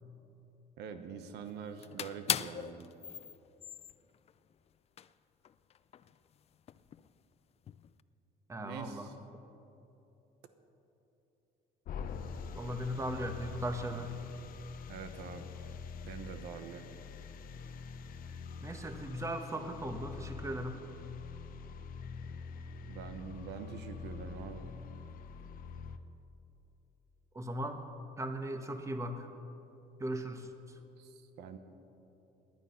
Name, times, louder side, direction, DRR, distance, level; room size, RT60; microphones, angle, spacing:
voice 1, 0.8-2.9 8.6-9.2 14.9-15.5 16.0-16.8 22.9-24.7 31.0-31.6, right 6 dB, 85° right, 8 dB, 1.0 m, -45 dB
sound 1, 1.3-1.5 1.8-4.5 5.0-5.1 5.4-7.1 7.7-8.0, left 9 dB, 40° left, 0.4 m, -39 dB
voice 2, 8.5-9.1 12.5-14.1 18.6-20.8 27.3-27.8 28.2-29.3 30.0-30.5, equal, 15° right, 6 dB, 1.1 m, -37 dB
sound 2, 11.9-26.0, left 5 dB, 55° left, 0.8 m, -45 dB
18.0 x 10.0 x 5.8 m, 3.0 s
cardioid pair, 110°, 17 cm